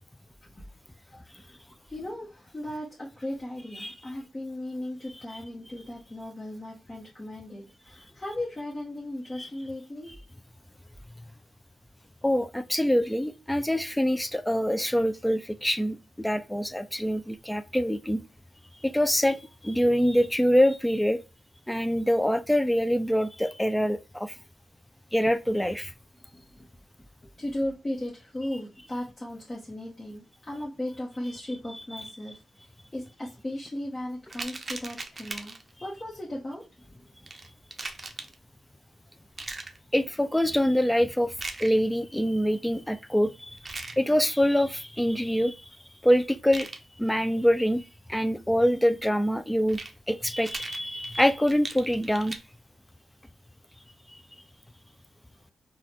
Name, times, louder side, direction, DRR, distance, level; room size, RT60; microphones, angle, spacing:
voice 1, 1.1-1.6 1.9-10.1 26.3-26.7 27.4-32.4 32.9-35.6 35.8-36.6, left 1 dB, 30° left, 1.2 m, -36 dB
voice 2, 12.2-18.2 18.8-19.4 19.6-21.2 21.7-24.3 25.1-25.9 31.7-32.1 39.9-41.3 41.6-43.3 44.0-45.5 46.0-46.7 47.0-47.8 48.1-49.8 50.1-52.4, equal, 10° left, 0.4 m, -25 dB
sound 1, 34.3-35.7 37.3-38.3 39.4-39.8 41.3-41.8 43.5-44.0 46.4-46.8 49.6-49.9 50.4-52.4, right 3 dB, 35° right, 0.6 m, -38 dB
3.8 x 2.3 x 3.0 m
supercardioid pair, 55°, 0 cm